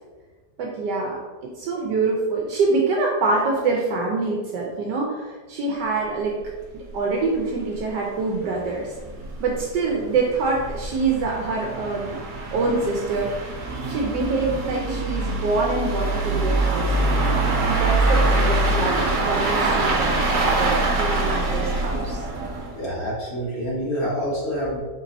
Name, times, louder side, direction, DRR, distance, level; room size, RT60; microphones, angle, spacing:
voice 1, 0.6-1.2 1.6-6.3 6.7-8.9 9.4-12.2 12.5-13.5 13.9-17.3 17.6-22.2, right 3 dB, 75° right, -1 dB, 1.2 m, -25 dB
sound 1, 6.4-6.5 6.8-6.9 7.3-7.4 7.8-7.9 8.5-22.9, right 2 dB, 55° right, 1.2 m, -24 dB
voice 2, 22.7-24.8, equal, 40° left, -6 dB, 1.3 m, -27 dB
4.5 x 4.1 x 2.6 m, 1.4 s
omnidirectional pair, 1.9 m